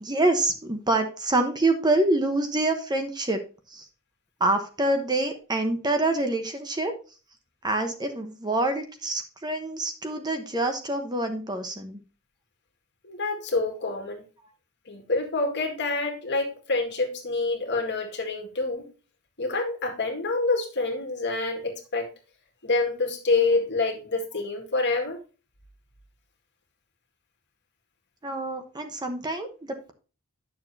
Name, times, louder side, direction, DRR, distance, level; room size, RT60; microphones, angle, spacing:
voice 1, 0.0-3.4 3.7-3.8 4.4-6.9 7.6-12.0 28.2-29.9, right 2 dB, 20° right, 6 dB, 1.0 m, -26 dB
voice 2, 13.0-14.3 14.9-18.9 19.4-22.1 22.6-25.2, left 3 dB, 50° left, 2 dB, 2.0 m, -27 dB
10.0 x 6.9 x 2.8 m, 0.34 s
head